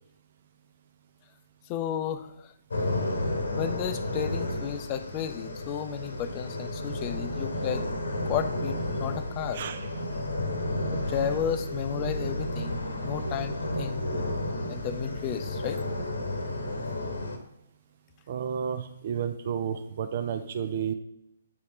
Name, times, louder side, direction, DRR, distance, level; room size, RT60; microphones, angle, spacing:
voice 1, 1.7-2.5 3.6-7.9 8.2-9.6 10.9-14.0 14.5-15.8, left 8 dB, 30° left, 11 dB, 0.5 m, -33 dB
sound 1, 2.7-17.4, left 1 dB, 75° left, 1.0 m, -32 dB
voice 2, 9.5-9.9 18.3-20.9, right 8 dB, 45° right, 9 dB, 0.5 m, -31 dB
8.4 x 4.2 x 3.1 m, 0.82 s
figure-of-eight pair, 130°, 0 cm